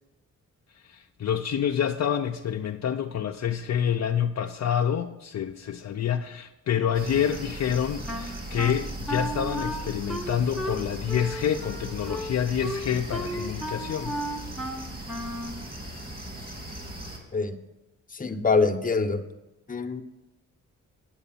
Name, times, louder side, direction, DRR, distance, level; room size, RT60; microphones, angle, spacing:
voice 1, 0.8-14.3, left 9 dB, 55° left, 4 dB, 0.6 m, -27 dB
sound 1, 6.9-17.2, right 1 dB, 30° right, 2.7 m, -38 dB
Wind instrument woodwind instrument, 8.1-15.6, equal, ahead, 1.2 m, -34 dB
voice 2, 18.1-19.2 19.7-20.0, left 4 dB, 25° left, 7 dB, 1.0 m, -24 dB
8.8 x 8.0 x 5.7 m, 0.97 s
cardioid pair, 65°, 33 cm